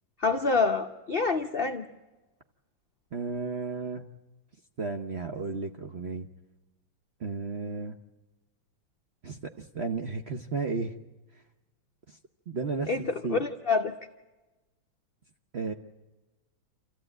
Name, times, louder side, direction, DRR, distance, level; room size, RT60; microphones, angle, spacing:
voice 1, 0.2-1.9 12.9-13.9, left 4 dB, 60° left, 5 dB, 0.6 m, -27 dB
voice 2, 3.1-4.0 4.8-6.3 7.2-8.0 9.2-10.9 12.1-12.2 12.5-13.4 15.5-15.7, right 4 dB, 50° right, 5 dB, 0.8 m, -33 dB
27.5 x 14.5 x 8.9 m, 1.1 s
omnidirectional pair, 2.1 m